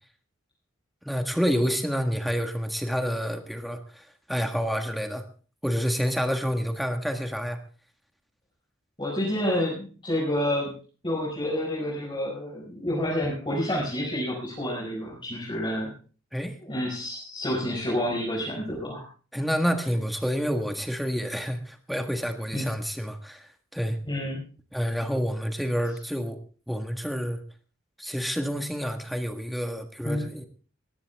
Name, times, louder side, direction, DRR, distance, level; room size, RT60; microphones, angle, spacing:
voice 1, 1.0-5.2 5.6-7.6 16.3-16.6 19.3-24.0 24.7-26.4 26.7-27.4 28.0-30.5, equal, ahead, 6 dB, 1.6 m, -28 dB
voice 2, 9.0-10.7 11.0-15.9 16.7-19.1 22.5-22.6 24.1-24.4 30.0-30.3, left 1 dB, 25° left, -4 dB, 5.0 m, -29 dB
19.5 x 14.0 x 3.5 m, 0.39 s
head